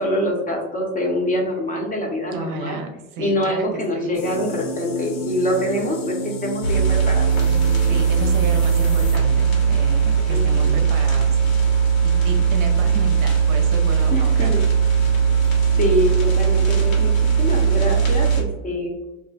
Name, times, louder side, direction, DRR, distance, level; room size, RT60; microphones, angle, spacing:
voice 1, 0.0-2.8 3.2-7.3 10.3-10.7 14.1-14.6 15.7-18.9, equal, 20° left, 0 dB, 0.7 m, -25 dB
voice 2, 2.3-2.9 3.2-4.2 7.5-7.6 7.9-11.4 12.0-14.7, right 3 dB, 55° right, 4 dB, 0.7 m, -32 dB
sound 1, 4.1-9.2, left 1 dB, 55° left, 0.9 m, -31 dB
sound 2, 6.6-18.4, right 6 dB, 85° left, 1.2 m, -18 dB
2.5 x 2.1 x 3.9 m, 0.96 s
supercardioid pair, 100°, 39 cm